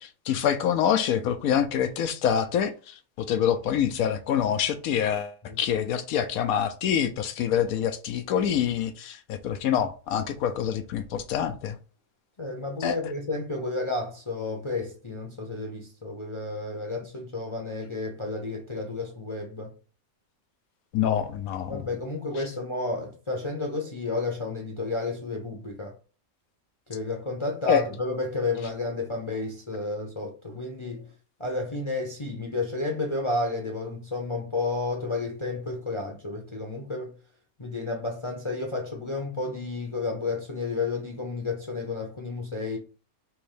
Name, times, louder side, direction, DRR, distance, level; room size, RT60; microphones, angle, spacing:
voice 1, 0.0-11.8 12.8-13.0 20.9-21.8 27.7-27.8, left 9 dB, 85° left, 1.0 m, -26 dB
voice 2, 12.4-19.7 21.7-25.9 26.9-31.1 31.4-37.1 37.6-42.8, left 2 dB, 30° left, 0.6 m, -31 dB
3.5 x 3.1 x 4.9 m
omnidirectional pair, 1.5 m